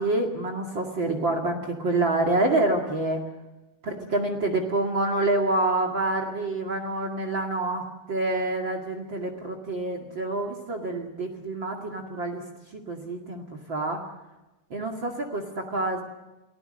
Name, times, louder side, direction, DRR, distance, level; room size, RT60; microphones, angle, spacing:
voice 1, 0.0-3.2 3.8-7.8 8.1-12.4 12.7-14.0 14.7-15.5 15.7-16.0, right 2 dB, 40° right, 5 dB, 2.7 m, -27 dB
29.5 x 20.0 x 6.6 m, 1.0 s
omnidirectional pair, 3.6 m